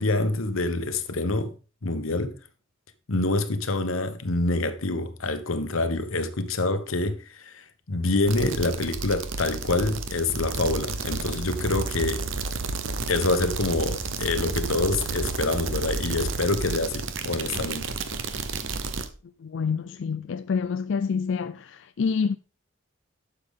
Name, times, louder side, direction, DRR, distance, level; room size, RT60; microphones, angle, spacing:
voice 1, 0.0-1.5 1.8-2.4 3.1-12.3 13.1-18.0, left 2 dB, 85° left, 1.1 m, -26 dB
sound 1, 8.3-19.1, right 4 dB, 65° right, 1.0 m, -31 dB
voice 2, 19.4-22.4, left 5 dB, 60° left, 0.4 m, -27 dB
12.0 x 6.8 x 3.7 m
head